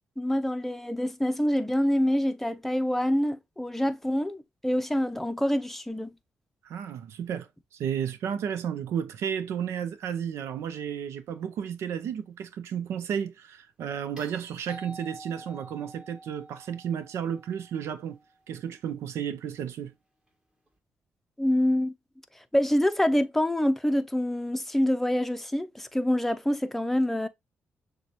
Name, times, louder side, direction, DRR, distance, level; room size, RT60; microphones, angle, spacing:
voice 1, 0.2-6.1 21.4-21.9 22.5-27.3, left 1 dB, 5° left, 0.6 m, -26 dB
voice 2, 6.6-18.2 18.5-19.9, right 8 dB, 80° right, 0.6 m, -33 dB
sound 1, 14.2-18.4 20.7-20.8, right 2 dB, 20° right, 1.5 m, -48 dB
6.5 x 2.3 x 2.9 m
cardioid pair, 65°, 5 cm